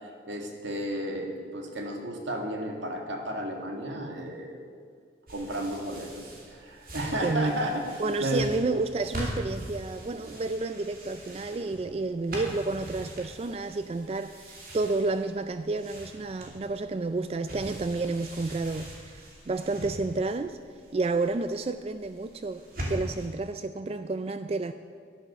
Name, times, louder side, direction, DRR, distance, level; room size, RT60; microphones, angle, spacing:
voice 1, 0.0-4.6 5.3-7.8 8.2-8.5, right 1 dB, 90° right, 2.1 m, -33 dB
sound 1, 5.3-23.3, equal, 50° right, 2.9 m, -42 dB
voice 2, 7.2-7.6 8.0-20.6 20.9-24.7, right 3 dB, 35° right, 0.3 m, -30 dB
11.5 x 10.5 x 6.8 m
head